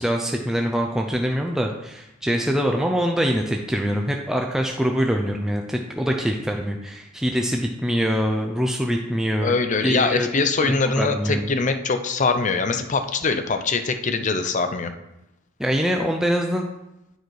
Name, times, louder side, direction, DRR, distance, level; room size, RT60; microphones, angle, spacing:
voice 1, 0.0-9.5 9.8-10.3 10.6-11.5 15.6-16.7, equal, 5° right, 2 dB, 0.4 m, -24 dB
voice 2, 9.4-14.9, left 4 dB, 35° left, 8 dB, 0.6 m, -23 dB
9.2 x 4.5 x 4.7 m, 0.87 s
head